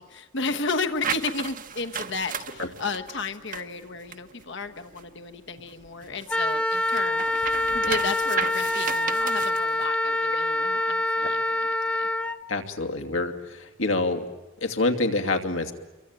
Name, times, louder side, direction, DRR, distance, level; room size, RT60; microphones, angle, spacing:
voice 1, 0.0-12.1, left 4 dB, 65° left, 7 dB, 1.3 m, -33 dB
sound 1, 1.0-5.2 5.6-9.9, right 7 dB, 45° right, 1.0 m, -35 dB
Wind instrument woodwind instrument, 6.3-12.4, left 1 dB, 5° left, 0.9 m, -25 dB
voice 2, 12.5-14.2 14.6-15.7, left 2 dB, 85° left, 4 dB, 2.7 m, -26 dB
27.0 x 23.5 x 9.0 m, 1.2 s
head